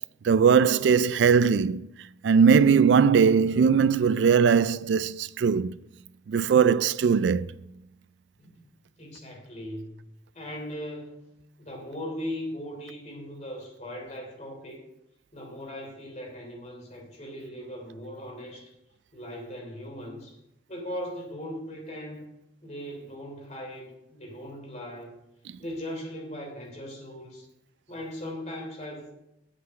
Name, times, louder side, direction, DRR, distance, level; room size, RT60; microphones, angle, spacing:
voice 1, 0.2-1.9 2.2-5.7 6.3-7.5, right 6 dB, 75° right, 0.3 m, -20 dB
voice 2, 9.0-10.0 10.3-11.3 11.6-14.8 15.3-18.7 19.1-20.4 20.7-22.3 22.6-25.1 25.6-27.5 27.9-29.1, equal, 40° left, 3.1 m, -39 dB
8.2 x 5.8 x 7.4 m
head